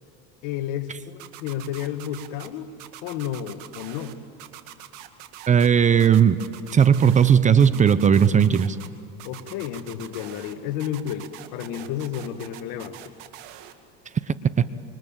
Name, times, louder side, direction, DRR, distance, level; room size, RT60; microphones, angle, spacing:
voice 1, 0.4-2.7 3.0-4.2 9.2-13.1, left 10 dB, 60° left, 8 dB, 1.8 m, -31 dB
sound 1, 1.2-2.5 2.8-4.1 4.4-5.7 6.0-7.3 7.6-8.9 9.2-10.5 10.8-13.7, right 13 dB, 65° right, 2.1 m, -43 dB
voice 2, 5.5-6.4 6.7-8.8 14.6-14.7, right 7 dB, 20° right, 14 dB, 0.8 m, -17 dB
26.5 x 24.0 x 8.9 m, 2.3 s
supercardioid pair, 130°, 33 cm